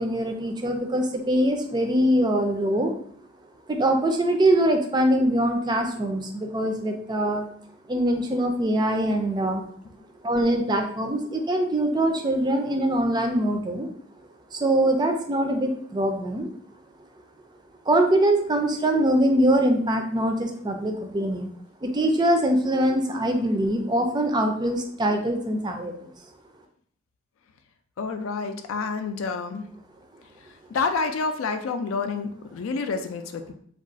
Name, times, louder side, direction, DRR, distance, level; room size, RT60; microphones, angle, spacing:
voice 1, 0.0-2.9 3.7-7.5 7.9-9.7 10.2-13.9 14.5-16.5 17.9-21.5 21.8-26.1, right 1 dB, 20° right, 4 dB, 0.3 m, -23 dB
voice 2, 28.0-29.7 30.7-33.5, left 4 dB, 80° left, 8 dB, 0.4 m, -28 dB
2.4 x 2.3 x 3.8 m, 0.63 s
head